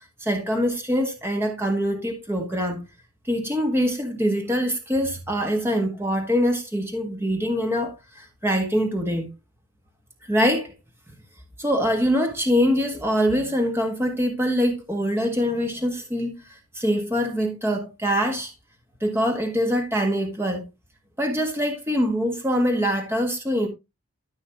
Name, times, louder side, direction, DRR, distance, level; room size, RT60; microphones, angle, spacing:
voice 1, 0.2-2.8 3.2-9.3 10.2-10.7 11.6-18.5 19.0-20.7 21.2-23.7, equal, 10° right, 1.5 m, -24 dB
13.0 x 5.6 x 2.9 m
head